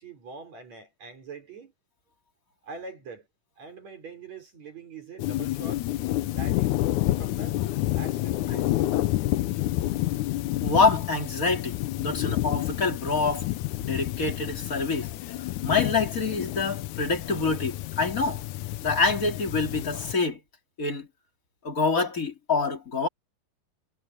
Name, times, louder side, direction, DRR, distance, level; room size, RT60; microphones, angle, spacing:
voice 1, 0.0-1.7 2.6-3.3 3.6-5.9 6.3-6.9 7.2-7.6 7.9-8.8, right 4 dB, 45° right, 5.3 m, -43 dB
sound 1, 5.2-20.1, left 15 dB, 85° left, 1.7 m, -29 dB
voice 2, 10.6-13.5 13.8-15.1 15.6-18.4 18.8-20.4 20.8-21.1 21.6-23.1, left 4 dB, 25° left, 2.6 m, -26 dB
omnidirectional pair, 4.4 m